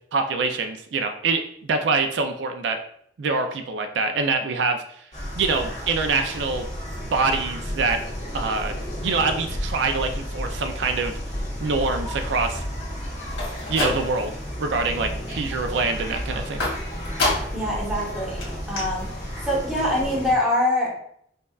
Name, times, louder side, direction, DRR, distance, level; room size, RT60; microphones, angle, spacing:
voice 1, 0.1-1.4 1.7-2.8 3.2-4.8 5.3-6.7 7.1-8.0 8.3-8.7 9.0-11.1 11.6-12.6 13.7-14.3 14.6-15.1 15.3-16.6, right 4 dB, 75° right, 5 dB, 0.4 m, -24 dB
sound 1, 5.1-20.3, equal, 40° left, 1.3 m, -32 dB
sound 2, 13.3-14.4 14.8-15.3 16.6-17.7 18.0-18.1 18.4-18.5 18.8-18.9, left 2 dB, 80° left, 1.3 m, -27 dB
voice 2, 17.5-19.1 19.4-20.9, left 1 dB, 5° right, -5 dB, 1.1 m, -24 dB
5.2 x 2.3 x 2.3 m, 0.67 s
head